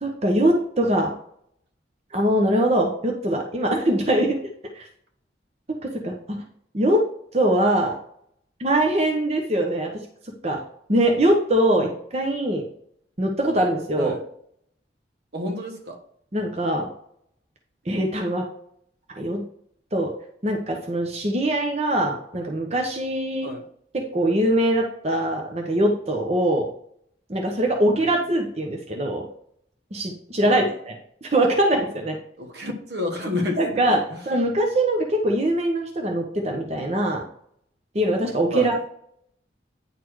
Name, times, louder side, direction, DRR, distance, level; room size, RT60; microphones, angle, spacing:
voice 1, 0.0-1.1 2.1-4.3 4.7-4.8 5.8-6.4 6.7-7.0 7.3-8.0 8.6-9.9 10.4-10.6 10.9-12.6 13.2-14.1 16.3-16.9 17.9-18.4 19.1-19.4 19.9-20.1 20.4-23.5 23.9-26.7 27.3-29.2 29.9-30.9 31.2-32.2 33.6-37.3 37.9-38.8, right 1 dB, 35° right, 0.9 m, -22 dB
voice 2, 15.3-16.0 23.4-23.6 27.9-28.1 30.4-30.7 32.4-33.9 38.5-38.7, left 1 dB, 65° right, 1.3 m, -30 dB
9.6 x 4.2 x 4.7 m
head